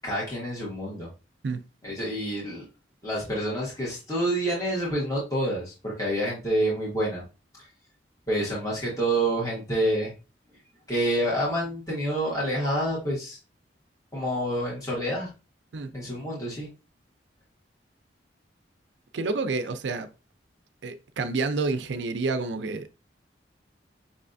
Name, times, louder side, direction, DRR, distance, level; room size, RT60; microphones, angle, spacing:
voice 1, 0.0-1.1 1.8-2.6 3.0-7.2 7.6-7.7 8.3-10.1 10.9-13.4 14.1-15.3 15.9-16.7, right 1 dB, 20° left, 1.5 m, -28 dB
voice 2, 19.1-20.1 20.8-22.9, right 3 dB, 85° right, 0.5 m, -29 dB
5.4 x 3.3 x 2.5 m
head